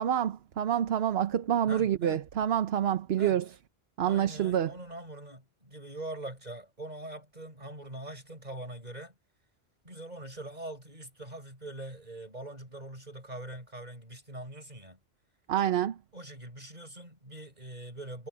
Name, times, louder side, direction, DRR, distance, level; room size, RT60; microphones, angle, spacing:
voice 1, 0.0-3.4 4.0-4.8 15.5-16.0, right 10 dB, 70° right, 1.0 m, -27 dB
voice 2, 1.7-2.3 3.2-3.4 4.0-9.1 9.8-15.0 16.1-18.3, right 1 dB, 40° right, 6.7 m, -43 dB
omnidirectional pair, 1.1 m